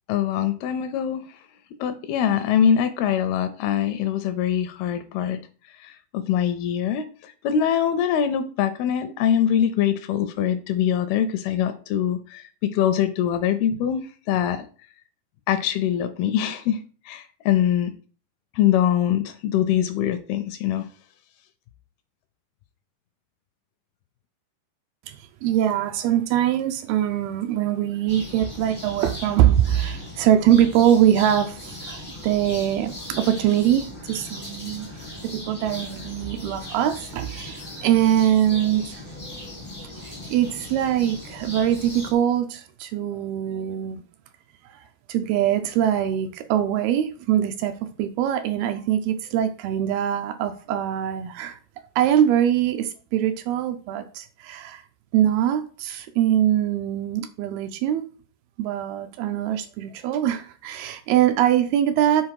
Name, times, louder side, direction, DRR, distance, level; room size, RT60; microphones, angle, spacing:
voice 1, 0.1-1.4 1.8-5.4 5.8-14.7 15.5-16.8 17.1-17.9 18.6-20.9, left 9 dB, 80° left, 10 dB, 2.3 m, -23 dB
voice 2, 25.1-34.9 35.2-39.0 40.0-44.0 44.7-47.7 48.0-51.6 52.0-54.8 55.1-58.0 58.6-62.3, right 11 dB, 80° right, 8 dB, 2.3 m, -23 dB
sound 1, 28.1-42.1, left 1 dB, 55° left, 0.3 m, -38 dB
7.5 x 4.0 x 4.7 m, 0.40 s
omnidirectional pair, 4.7 m